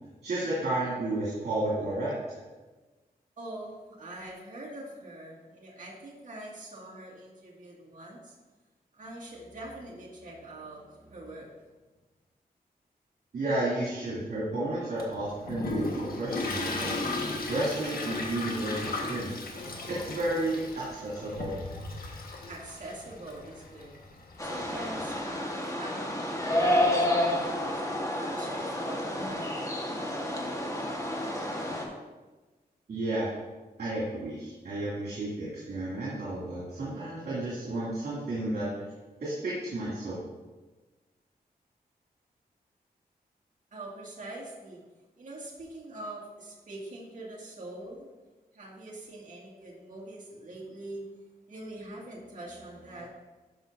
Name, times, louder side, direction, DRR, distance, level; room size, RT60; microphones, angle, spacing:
voice 1, 0.2-2.1 13.3-17.0 17.5-19.4 19.9-21.5 32.9-33.3 33.8-38.7 39.2-40.2, right 1 dB, 80° right, -9 dB, 2.5 m, -32 dB
voice 2, 3.4-8.3 8.9-11.5 22.5-23.9 24.4-29.8 43.7-44.8 45.2-48.1 48.5-51.0 51.5-53.1, right 1 dB, 50° right, -4 dB, 2.1 m, -43 dB
Toilet flush, 15.0-25.2, left 2 dB, 65° left, 1.4 m, -36 dB
sound 1, 24.4-31.9, left 1 dB, 20° left, 1.4 m, -30 dB
12.5 x 5.5 x 2.7 m, 1.2 s
cardioid pair, 75°, 16 cm